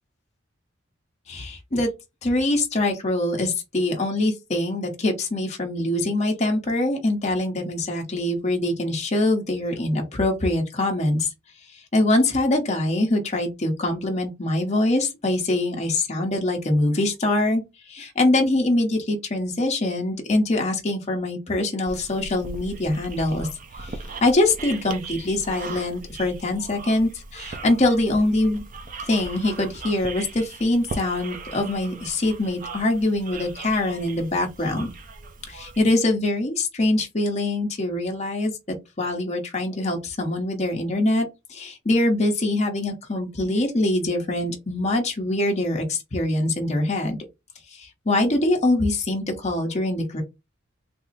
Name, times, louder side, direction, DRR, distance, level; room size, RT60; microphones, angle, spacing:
voice 1, 1.3-1.9 2.2-11.3 11.9-17.6 17.9-23.5 23.8-28.6 29.1-34.9 35.5-38.5 39.0-47.2 47.7-50.2, left 2 dB, 35° left, 0.9 m, -23 dB
sound 1, 21.9-35.8, right 3 dB, 45° right, 0.6 m, -39 dB
3.5 x 2.0 x 4.0 m
head